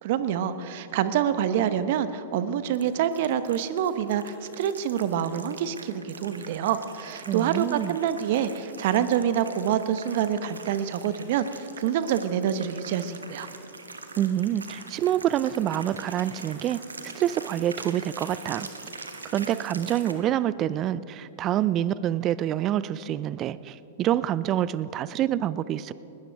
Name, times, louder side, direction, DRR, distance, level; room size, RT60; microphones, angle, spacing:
voice 1, 0.0-13.5, right 9 dB, 55° right, 12 dB, 0.9 m, -26 dB
sound 1, 2.7-20.1, right 3 dB, 90° right, 1.3 m, -43 dB
voice 2, 7.3-8.0 14.2-16.8 17.1-18.7 19.3-25.9, right 11 dB, 35° right, 17 dB, 0.5 m, -27 dB
21.0 x 17.5 x 3.5 m, 2.9 s
hypercardioid pair, 105°, 0 cm